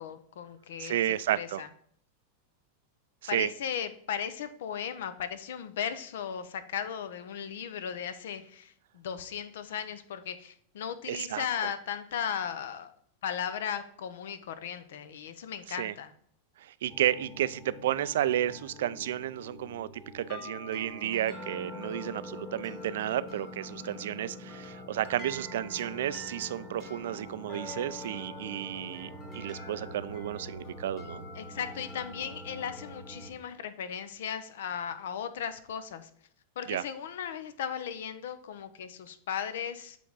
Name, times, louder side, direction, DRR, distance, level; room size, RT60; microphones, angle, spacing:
voice 1, 0.0-1.0 1.4-1.7 3.3-12.9 13.2-16.1 31.3-36.1 36.6-40.0, left 8 dB, 80° left, 12 dB, 0.7 m, -36 dB
voice 2, 0.8-1.6 3.3-3.5 11.1-11.7 15.7-15.9 16.8-31.2 36.7-36.8, right 12 dB, 80° right, 17 dB, 0.3 m, -32 dB
sound 1, 16.9-33.3, left 1 dB, 30° left, 2.0 m, -44 dB
8.3 x 3.4 x 3.9 m, 0.64 s
supercardioid pair, 145°, 0 cm